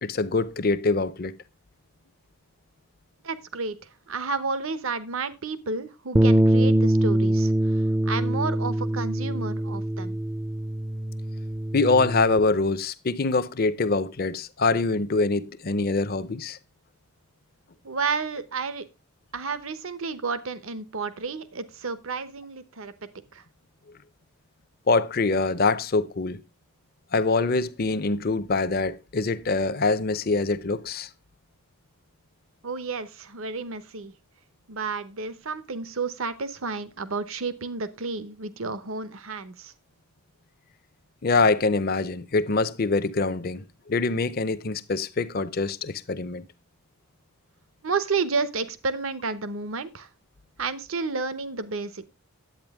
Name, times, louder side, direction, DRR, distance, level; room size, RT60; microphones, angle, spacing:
voice 1, 0.0-1.3 11.7-16.6 24.9-26.4 27.1-31.1 41.2-46.4, left 3 dB, 45° left, 0.6 m, -24 dB
voice 2, 3.2-3.8 4.1-10.2 17.8-18.8 19.3-23.4 32.6-34.1 34.7-39.7 47.8-50.1 50.6-52.1, right 4 dB, 70° right, 0.9 m, -31 dB
Bass guitar, 6.1-12.4, right 1 dB, 20° right, 0.5 m, -23 dB
10.5 x 8.6 x 3.5 m
head